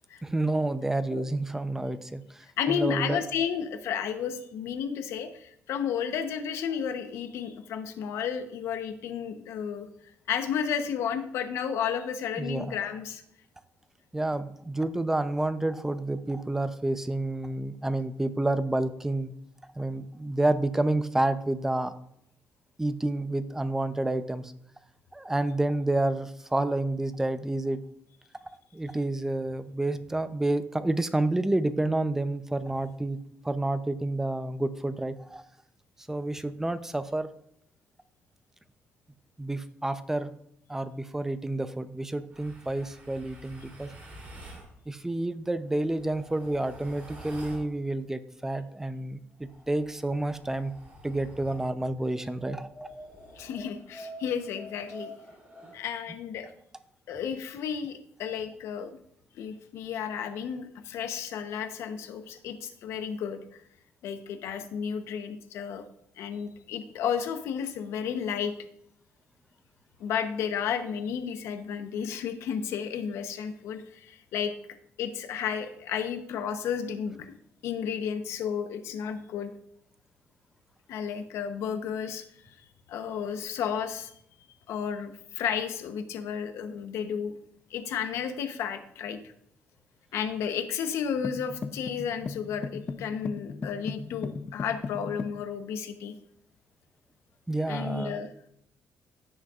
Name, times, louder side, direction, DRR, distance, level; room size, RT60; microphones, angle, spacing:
voice 1, 0.2-3.2 12.4-12.8 14.1-19.3 19.8-21.9 22.8-24.5 25.1-27.8 28.7-33.2 33.4-35.4 36.1-37.3 39.4-40.3 40.7-43.9 44.9-50.7 51.0-52.9 97.5-98.2, right 2 dB, 10° right, 11 dB, 0.6 m, -29 dB
voice 2, 2.6-9.9 10.3-13.2 53.3-55.1 55.7-56.5 57.1-59.0 59.3-63.6 64.0-65.8 66.2-68.5 70.0-74.5 75.0-77.3 77.6-79.5 80.9-82.5 82.9-84.1 84.7-87.3 87.7-89.2 90.1-96.1 97.7-98.3, left 7 dB, 80° left, 8 dB, 0.9 m, -32 dB
sound 1, 42.3-44.7 45.6-47.7 49.3-51.7 52.4-55.8, right 1 dB, 35° right, 3.1 m, -47 dB
sound 2, 91.2-95.4, left 4 dB, 35° left, 0.5 m, -37 dB
15.0 x 6.4 x 2.5 m, 0.72 s
cardioid pair, 120°, 5 cm